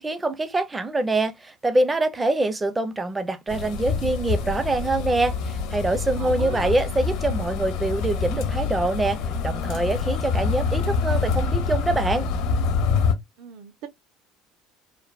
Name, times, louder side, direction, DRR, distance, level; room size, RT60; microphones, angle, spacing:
voice 1, 0.0-12.3, right 2 dB, 15° right, 0.4 m, -25 dB
sound 1, 3.5-13.1, left 5 dB, 65° left, 0.7 m, -26 dB
voice 2, 6.2-6.7 13.4-13.9, right 8 dB, 65° right, 0.6 m, -39 dB
3.3 x 2.1 x 2.3 m
cardioid pair, 150°, 0 cm